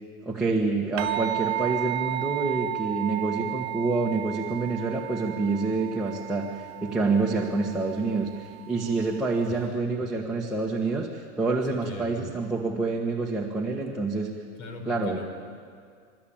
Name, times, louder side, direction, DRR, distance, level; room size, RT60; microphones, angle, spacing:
voice 1, 0.2-14.3 14.8-15.2, right 3 dB, ahead, -4 dB, 1.5 m, -27 dB
sound 1, 1.0-9.7, right 20 dB, 35° right, 1.7 m, -34 dB
voice 2, 9.5-10.1 11.7-12.3 14.6-15.3, left 3 dB, 65° left, 5 dB, 4.6 m, -41 dB
29.0 x 13.0 x 8.8 m, 2.2 s
supercardioid pair, 150°, 40 cm